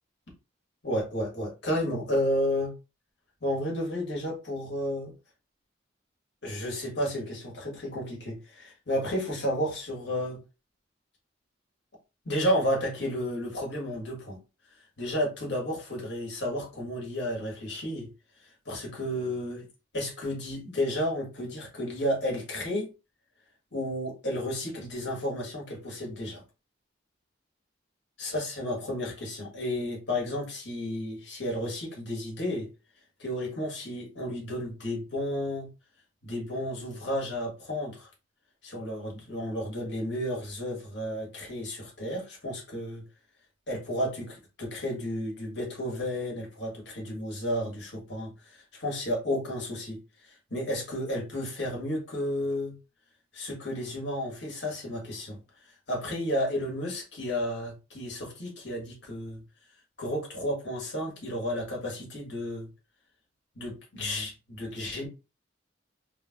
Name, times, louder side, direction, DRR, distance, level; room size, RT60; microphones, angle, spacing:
voice 1, 0.8-2.7 3.4-5.1 6.4-10.4 12.2-14.4 15.0-18.1 18.4-19.6 19.9-22.9 23.7-26.4 28.2-32.7 33.2-35.7 36.2-38.1 38.6-43.0 43.7-52.7 53.3-55.4 55.9-59.4 60.0-62.7 63.5-65.1, equal, 60° left, 1.6 m, -32 dB
3.3 x 3.3 x 2.2 m
head